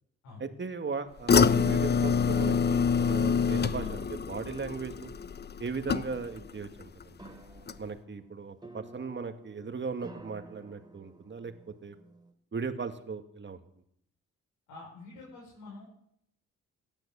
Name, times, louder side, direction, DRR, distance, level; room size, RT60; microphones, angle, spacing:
voice 1, 0.4-5.1 5.6-7.3 7.8-12.0 12.5-13.6, right 5 dB, 35° right, 8 dB, 2.0 m, -37 dB
sound 1, 1.3-6.5 6.8-7.3 7.7-7.8, left 6 dB, 35° left, 0.8 m, -26 dB
sound 2, 7.1-12.3, right 2 dB, 15° right, 2.8 m, -52 dB
voice 2, 14.7-15.9, left 3 dB, 85° left, -3 dB, 5.6 m, -47 dB
16.5 x 9.1 x 7.0 m, 0.73 s
supercardioid pair, 55°, 31 cm